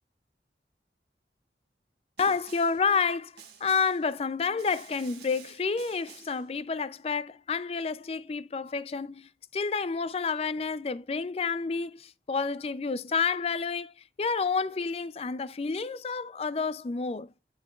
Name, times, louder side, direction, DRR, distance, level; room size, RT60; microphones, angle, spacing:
voice 1, 2.2-17.3, left 5 dB, 35° left, 0.4 m, -30 dB
Snare drum, 2.2-2.9 3.4-4.1 4.6-6.5, right 8 dB, 75° right, 1.7 m, -51 dB
9.2 x 7.1 x 2.3 m
head